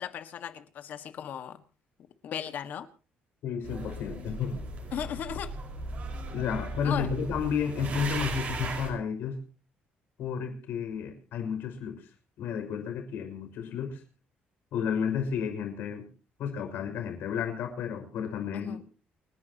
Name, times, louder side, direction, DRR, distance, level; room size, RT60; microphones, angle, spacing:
voice 1, 0.0-1.6 2.2-2.9 4.9-5.5 6.8-7.1 18.5-18.8, left 9 dB, 55° left, 10 dB, 1.7 m, -36 dB
voice 2, 3.4-4.7 6.3-9.4 10.2-12.1 12.4-14.0 14.7-16.1 16.4-18.8, left 7 dB, 75° left, 4 dB, 6.0 m, -32 dB
sound 1, 3.6-8.9, right 2 dB, 45° right, 5.0 m, -37 dB
29.0 x 11.0 x 2.9 m, 0.37 s
cardioid pair, 165°, 4 cm